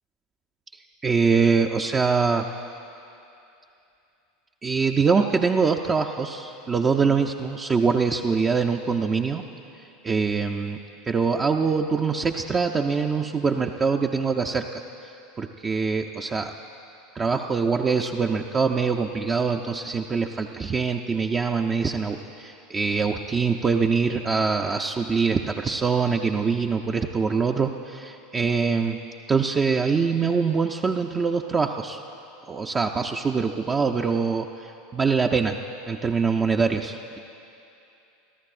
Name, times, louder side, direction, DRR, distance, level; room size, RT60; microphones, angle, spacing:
voice 1, 1.0-2.5 4.6-9.4 10.0-10.8 11.1-14.7 15.0-16.5 17.2-29.0 29.3-32.0 32.5-35.6 35.9-37.2, right 5 dB, 25° right, 3 dB, 0.5 m, -24 dB
26.0 x 14.0 x 2.5 m, 2.7 s
figure-of-eight pair, 80°, 0 cm